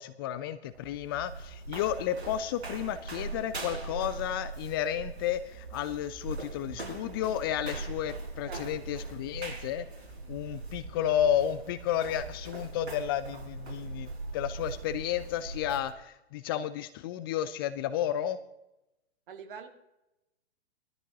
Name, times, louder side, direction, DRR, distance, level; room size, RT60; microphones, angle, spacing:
voice 1, 0.0-9.9 10.3-18.4, left 10 dB, 20° left, 13 dB, 0.4 m, -32 dB
sound 1, 0.6-15.9, right 3 dB, 75° right, 4.8 m, -41 dB
voice 2, 8.5-9.0 19.3-19.7, right 6 dB, 50° right, 5 dB, 2.1 m, -45 dB
22.0 x 13.5 x 2.8 m, 0.94 s
figure-of-eight pair, 115°, 32 cm